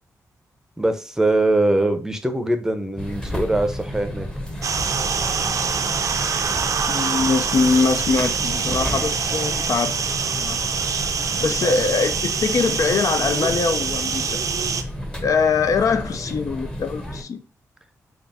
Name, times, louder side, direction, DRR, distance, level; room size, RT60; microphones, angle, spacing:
voice 1, 0.8-4.3 11.6-11.7, right 2 dB, 10° right, 0.6 m, -22 dB
sound 1, 3.0-17.2, equal, 10° left, 0.9 m, -32 dB
sound 2, 4.6-14.8, right 6 dB, 60° right, 0.4 m, -25 dB
voice 2, 6.9-10.0 10.3-10.6 11.4-14.4 15.2-17.4, left 4 dB, 65° left, 0.4 m, -22 dB
3.5 x 2.3 x 4.0 m
cardioid pair, 70°, 6 cm